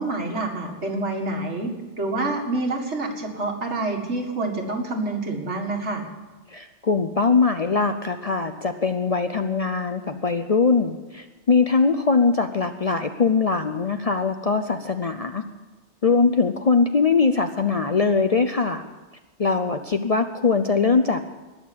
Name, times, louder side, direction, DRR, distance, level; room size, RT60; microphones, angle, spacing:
voice 1, 0.0-6.0, right 2 dB, 70° right, 1 dB, 2.3 m, -27 dB
voice 2, 6.5-15.4 16.0-18.8 19.4-21.2, left 4 dB, 40° left, 7 dB, 0.6 m, -21 dB
19.5 x 6.7 x 8.4 m, 1.2 s
omnidirectional pair, 1.2 m